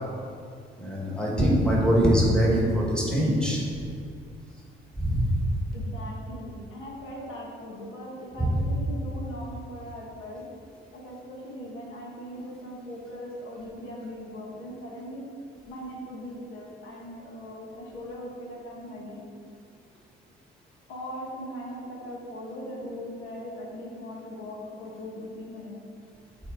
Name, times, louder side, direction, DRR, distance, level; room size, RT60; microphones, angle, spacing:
voice 1, 0.8-3.6 5.0-5.3 8.4-8.5, equal, 5° left, -5 dB, 1.7 m, -23 dB
voice 2, 5.7-10.5 10.9-15.3 15.7-19.2 20.9-25.8, equal, 85° left, -3 dB, 1.4 m, -39 dB
8.1 x 4.3 x 3.9 m, 2.3 s
cardioid pair, 90°, 20 cm